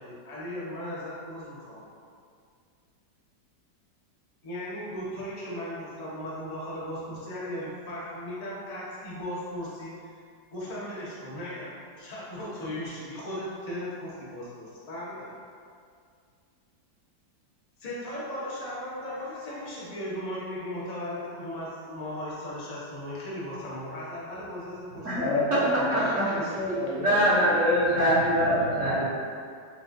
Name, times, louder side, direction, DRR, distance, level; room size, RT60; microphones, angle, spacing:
voice 1, 0.0-1.8 4.4-10.1 10.5-15.3 17.8-25.4 25.9-26.3, left 1 dB, 35° left, -7 dB, 0.6 m, -37 dB
voice 2, 25.1-27.2, left 1 dB, 85° left, -7 dB, 1.7 m, -29 dB
voice 3, 25.9-26.2 27.0-29.0, equal, 55° right, -9 dB, 0.9 m, -23 dB
6.7 x 2.4 x 2.5 m, 2.2 s
omnidirectional pair, 1.9 m